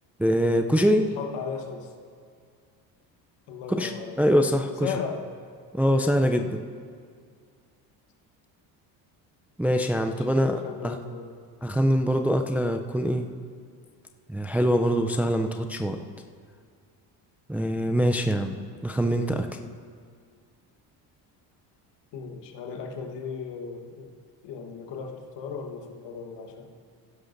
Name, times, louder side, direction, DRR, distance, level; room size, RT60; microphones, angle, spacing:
voice 1, 0.2-1.1 3.7-3.9 4.2-4.9 5.7-6.6 9.6-11.0 11.6-13.3 14.3-16.0 17.5-18.6 18.8-19.5, equal, 5° right, 5 dB, 0.4 m, -23 dB
voice 2, 0.9-1.9 3.5-4.3 4.8-5.3 9.9-11.3 22.1-24.1 24.4-26.7, left 6 dB, 65° left, 3 dB, 1.4 m, -36 dB
15.5 x 11.0 x 2.6 m, 2.1 s
supercardioid pair, 80°, 45 cm